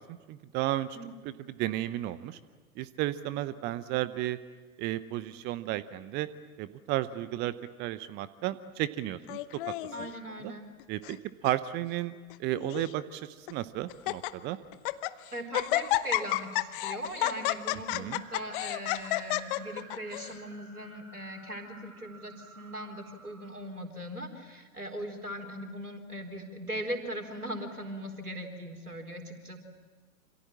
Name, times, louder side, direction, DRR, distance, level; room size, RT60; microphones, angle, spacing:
voice 1, 0.3-1.0 1.2-2.4 2.8-4.4 4.8-6.3 6.6-9.4 10.4-10.5 10.9-11.2 11.4-12.1 12.4-14.6 17.9-18.2, right 14 dB, 25° right, 15 dB, 0.7 m, -33 dB
Laughter, 9.3-10.1 10.8-11.2 11.4-11.5 12.3-12.9 13.5-13.6 13.9-14.3 14.7-15.1 15.5-20.3, left 17 dB, 35° left, 1.0 m, -31 dB
voice 2, 9.9-10.7 15.3-29.6, equal, 85° right, 4 dB, 4.1 m, -39 dB
sound 1, 18.1-23.6, right 5 dB, 70° right, 4.4 m, -52 dB
27.5 x 27.0 x 7.4 m, 1.3 s
figure-of-eight pair, 100°, 44 cm